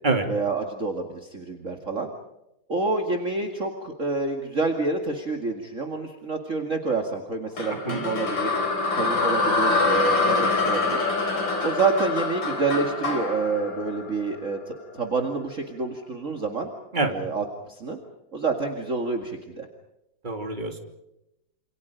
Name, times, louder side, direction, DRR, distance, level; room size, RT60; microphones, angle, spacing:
voice 1, 0.3-2.1 2.7-8.5 9.0-11.0 11.6-16.7 17.1-18.0 18.3-19.7, right 3 dB, 40° right, 3 dB, 2.5 m, -28 dB
sound 1, 7.6-14.7, left 3 dB, 65° left, 4.7 m, -25 dB
voice 2, 20.2-20.8, right 3 dB, 20° right, 5 dB, 3.1 m, -25 dB
28.0 x 28.0 x 5.2 m, 0.87 s
omnidirectional pair, 2.2 m